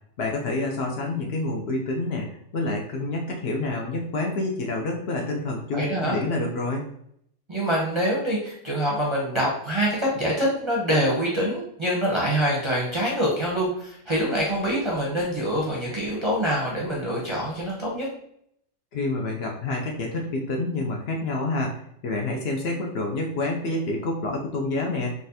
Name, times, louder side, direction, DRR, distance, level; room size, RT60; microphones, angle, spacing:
voice 1, 0.2-6.9 18.9-21.7 22.0-25.1, left 2 dB, 60° left, 0 dB, 0.7 m, -28 dB
voice 2, 5.7-6.2 7.5-18.1, equal, 30° right, -4 dB, 0.5 m, -25 dB
4.0 x 2.4 x 2.6 m, 0.71 s
omnidirectional pair, 1.3 m